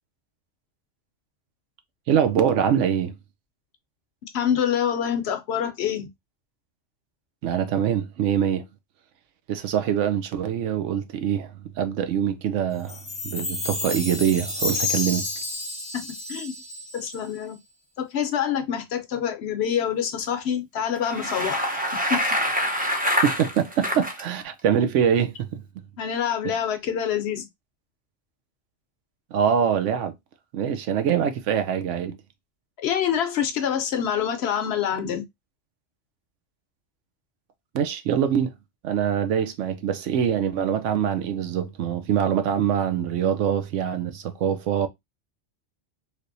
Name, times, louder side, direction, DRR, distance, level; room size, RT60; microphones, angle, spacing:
voice 1, 2.1-3.1 7.4-8.6 9.5-13.0 13.2-15.2 23.2-25.6 26.4-26.5 29.3-30.1 30.5-32.2 37.7-38.5 38.8-44.9, right 8 dB, 85° right, 0.9 m, -24 dB
voice 2, 4.3-6.1 15.9-16.6 16.9-17.6 18.0-21.6 22.1-22.2 26.0-27.5 32.8-35.2, left 8 dB, 65° left, 0.9 m, -26 dB
Chime, 12.9-17.4, left 3 dB, 25° left, 0.7 m, -31 dB
Bicycle, 20.9-24.2, equal, 10° right, 0.4 m, -25 dB
3.3 x 2.8 x 2.5 m
omnidirectional pair, 1.2 m